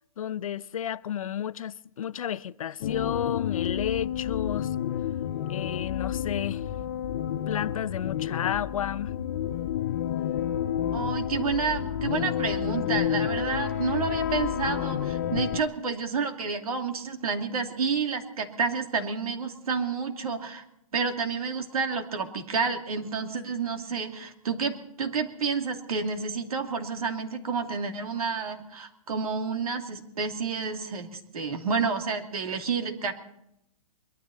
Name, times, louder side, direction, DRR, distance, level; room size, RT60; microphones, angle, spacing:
voice 1, 0.2-4.7 5.5-6.6 7.5-9.1, left 9 dB, 70° left, 0.6 m, -32 dB
sound 1, 2.8-15.6, left 10 dB, 30° left, 0.5 m, -30 dB
voice 2, 10.9-20.6 20.9-33.1, right 5 dB, 85° right, 2.7 m, -30 dB
22.5 x 13.0 x 4.2 m
hypercardioid pair, 170°, 18 cm